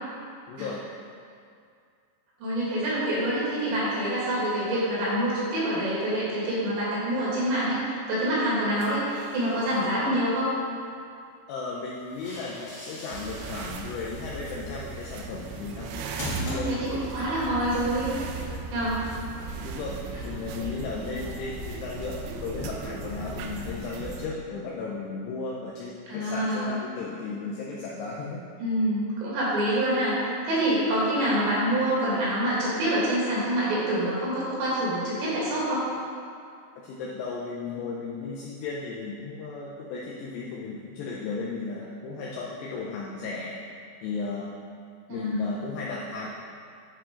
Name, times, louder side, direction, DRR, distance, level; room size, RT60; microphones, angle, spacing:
voice 1, 0.5-0.8 11.5-16.7 19.6-28.4 36.8-43.6 44.0-44.5 45.1-46.3, left 4 dB, 85° left, -4 dB, 2.4 m, -35 dB
voice 2, 2.4-10.5 16.4-18.1 18.7-19.0 26.1-26.8 28.6-30.2 30.4-35.9 45.1-45.5, right 1 dB, 70° right, -8 dB, 4.1 m, -26 dB
sound 1, 8.8-9.9 11.8-17.2, right 1 dB, 60° left, 1.1 m, -40 dB
sound 2, 13.1-24.3, right 3 dB, 90° right, 3.1 m, -37 dB
9.8 x 4.8 x 3.7 m, 2.3 s
omnidirectional pair, 5.5 m